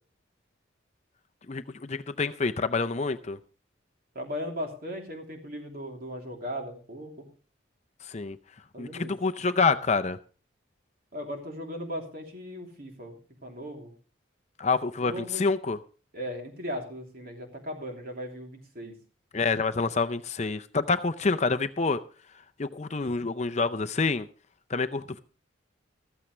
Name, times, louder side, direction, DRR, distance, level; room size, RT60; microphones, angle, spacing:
voice 1, 1.5-3.4 8.1-8.4 8.8-10.2 14.6-15.8 19.3-22.0 22.6-24.3 24.7-25.2, left 4 dB, 35° left, 10 dB, 0.6 m, -27 dB
voice 2, 4.1-7.2 8.7-9.1 11.1-13.9 15.0-15.5 16.1-18.9, equal, 50° right, 2 dB, 3.1 m, -37 dB
14.5 x 14.0 x 3.2 m, 0.37 s
head